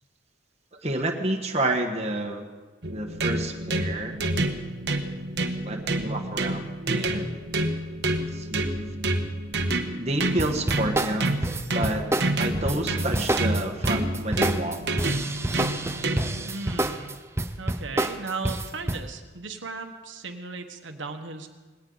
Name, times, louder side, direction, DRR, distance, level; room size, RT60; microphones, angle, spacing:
voice 1, 0.8-2.5 2.9-4.2 5.6-7.3 8.3-8.9 9.9-11.4 11.7-12.0 12.4-15.0, right 1 dB, 35° right, 2 dB, 1.4 m, -29 dB
sound 1, 2.8-16.5, right 2 dB, 60° right, 1.2 m, -28 dB
sound 2, 10.4-19.0, right 1 dB, 15° right, 0.6 m, -28 dB
voice 2, 16.4-17.2 17.6-21.5, right 4 dB, 85° right, 5 dB, 1.3 m, -36 dB
20.0 x 17.5 x 4.0 m, 1.3 s
head